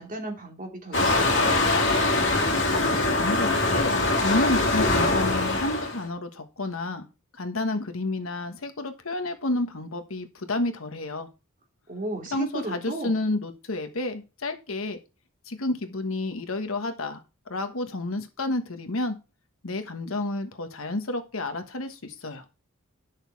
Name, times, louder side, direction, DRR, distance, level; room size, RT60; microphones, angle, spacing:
voice 1, 0.0-1.6 11.9-13.3, right 2 dB, 40° right, 2 dB, 2.7 m, -35 dB
Waves surf, 0.9-6.0, left 2 dB, 60° left, 2.5 m, -23 dB
voice 2, 2.7-7.1 7.3-11.3 12.3-15.0 15.5-17.2 17.5-19.1 19.6-22.4, left 2 dB, 75° left, 7 dB, 1.4 m, -30 dB
10.5 x 6.5 x 4.7 m, 0.31 s
head